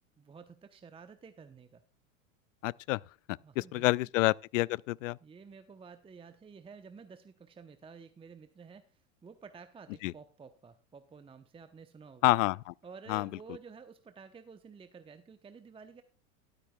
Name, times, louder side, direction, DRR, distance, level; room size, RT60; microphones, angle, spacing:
voice 1, 0.2-1.8 3.4-4.1 5.2-12.3 12.8-16.0, right 5 dB, 15° right, 0.8 m, -52 dB
voice 2, 2.6-3.0 3.6-5.2 10.0-10.1 12.2-12.7 13.1-13.3, left 20 dB, 65° left, 0.5 m, -28 dB
13.0 x 12.0 x 2.3 m
hypercardioid pair, 100°, 41 cm